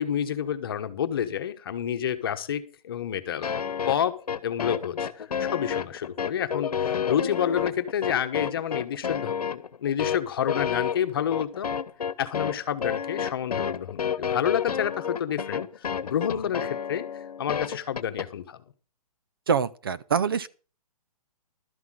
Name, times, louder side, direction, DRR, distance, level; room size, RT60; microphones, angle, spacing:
voice 1, 0.0-3.5 3.9-11.7 12.2-17.0 17.4-18.6, left 9 dB, 40° left, 1.1 m, -29 dB
sound 1, 3.4-18.3, left 7 dB, 85° left, 1.1 m, -30 dB
voice 2, 19.5-20.5, right 6 dB, 40° right, 0.5 m, -25 dB
12.5 x 5.9 x 7.5 m
hypercardioid pair, 170°, 19 cm